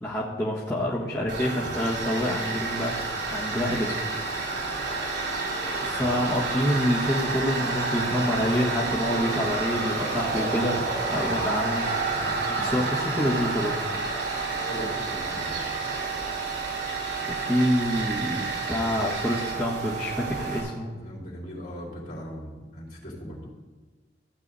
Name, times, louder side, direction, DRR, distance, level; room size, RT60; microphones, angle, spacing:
voice 1, 0.0-2.9 3.3-4.0 5.8-10.8 11.1-11.9 12.6-13.8 17.3-20.9, equal, 20° left, -9 dB, 1.5 m, -27 dB
Tools, 1.3-20.6, right 3 dB, 85° right, 3.1 m, -29 dB
voice 2, 12.1-12.8 14.6-15.7 21.0-23.5, equal, 60° left, -7 dB, 3.8 m, -39 dB
16.0 x 9.7 x 2.7 m, 1.2 s
head